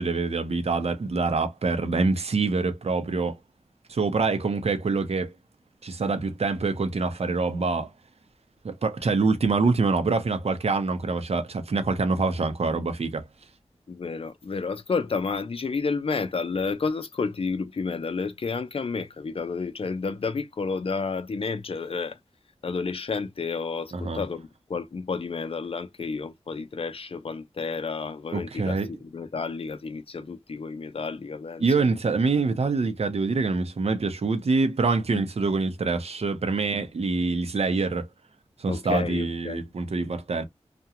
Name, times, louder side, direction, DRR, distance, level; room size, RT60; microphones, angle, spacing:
voice 1, 0.0-3.4 3.9-5.3 5.8-7.9 8.6-13.3 23.9-24.2 28.3-28.9 31.6-38.1 38.6-40.4, right 4 dB, 65° right, 0.7 m, -25 dB
voice 2, 13.9-22.2 22.6-31.6 35.1-35.2 38.7-39.6, left 4 dB, 60° left, 0.6 m, -31 dB
2.4 x 2.2 x 2.8 m
wide cardioid pair, 70°, 11 cm